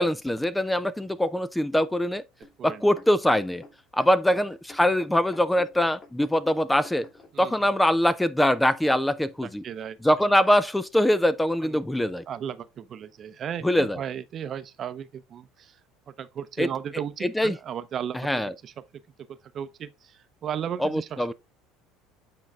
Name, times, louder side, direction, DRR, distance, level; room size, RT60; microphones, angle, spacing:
voice 1, 0.0-2.2 2.6-3.6 3.9-7.0 7.4-9.6 10.0-12.2 13.6-14.0 16.6-16.7 17.2-17.6 18.2-18.5 20.8-21.3, left 1 dB, 5° left, 0.4 m, -23 dB
sound 1, 2.4-7.3 8.0-8.1, left 3 dB, 40° left, 2.9 m, -48 dB
voice 2, 9.4-10.0 11.6-11.8 12.3-15.8 16.2-18.7 19.3-21.3, right 9 dB, 40° right, 0.7 m, -35 dB
8.7 x 3.9 x 3.5 m
supercardioid pair, 105°, 0 cm